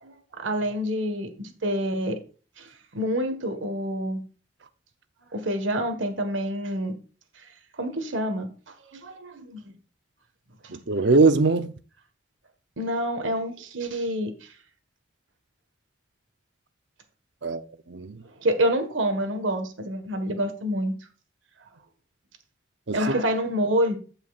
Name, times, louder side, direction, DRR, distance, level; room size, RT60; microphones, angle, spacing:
voice 1, 0.0-2.2 2.6-4.2 5.3-6.9 7.8-8.5 8.9-9.7 10.6-10.8 12.8-14.5 18.4-20.9 22.9-24.0, equal, 90° right, 1.5 m, -27 dB
voice 2, 10.7-11.7 17.4-18.2 22.9-23.1, right 3 dB, 65° right, 0.7 m, -22 dB
15.0 x 5.6 x 2.5 m
head